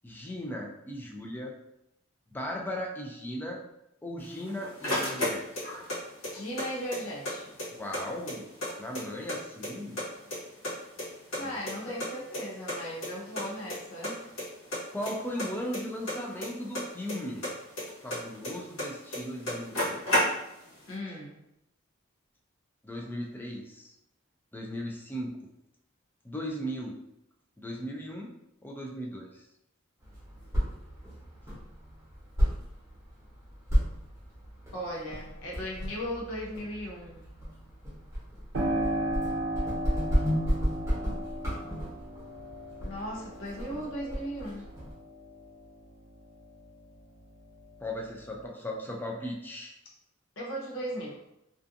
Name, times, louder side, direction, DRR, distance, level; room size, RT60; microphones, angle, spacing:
voice 1, 0.0-1.5 2.3-3.6 4.0-5.7 7.7-8.4 8.8-10.0 11.4-11.6 14.9-17.4 18.0-20.1 22.8-23.9 24.5-25.4 26.2-27.0 27.6-28.3 28.6-29.4 47.8-49.7, equal, 10° left, -1 dB, 0.3 m, -37 dB
sound 1, 4.2-6.0 6.2-7.3 7.6-7.7 7.9-9.4 9.6-10.4 10.6-12.1 12.3-12.4 12.7-12.8 13.0-13.1 13.4-13.8 14.0-14.4 14.7-17.2 17.4-18.9 19.1-19.2 19.4-20.7, left 1 dB, 85° left, 1.2 m, -31 dB
voice 2, 6.3-7.5 11.3-14.3 20.9-21.4 34.7-37.3 42.8-44.7 50.4-51.2, equal, 65° left, -3 dB, 0.7 m, -37 dB
sound 2, 30.0-44.9, equal, 15° right, 0.8 m, -33 dB
Piano, 38.5-47.0 47.4-48.4, right 1 dB, 70° right, 0.5 m, -36 dB
2.5 x 2.4 x 2.5 m, 0.84 s
head